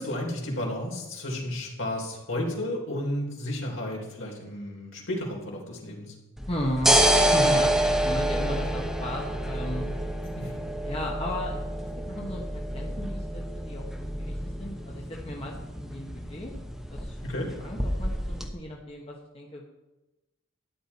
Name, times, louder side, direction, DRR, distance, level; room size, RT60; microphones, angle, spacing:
voice 1, 0.0-6.1 10.4-10.5 17.2-17.5, left 1 dB, 70° left, -1 dB, 3.7 m, -32 dB
sound 1, 6.4-18.5, right 1 dB, ahead, 1.1 m, -28 dB
voice 2, 6.5-7.0 7.3-9.8 10.8-16.5 16.9-17.2 17.6-19.7, equal, 25° left, -2 dB, 1.3 m, -35 dB
13.0 x 10.0 x 4.2 m, 1.0 s
head